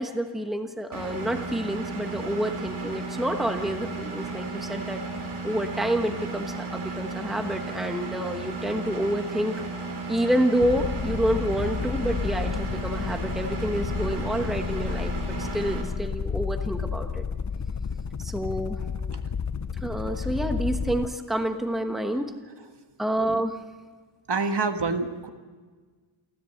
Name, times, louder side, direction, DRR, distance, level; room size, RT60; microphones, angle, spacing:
voice 1, 0.0-5.0 5.4-9.5 10.1-17.2 18.2-18.8 19.8-22.3 23.0-23.6, right 1 dB, ahead, 6 dB, 1.1 m, -28 dB
Engine, 0.9-15.8, right 3 dB, 80° right, 3.6 m, -34 dB
sound 1, 10.5-21.2, left 6 dB, 35° left, 0.6 m, -31 dB
voice 2, 24.3-25.3, right 4 dB, 55° right, 7 dB, 1.6 m, -27 dB
28.0 x 14.0 x 7.9 m, 1.5 s
wide cardioid pair, 165°, 48 cm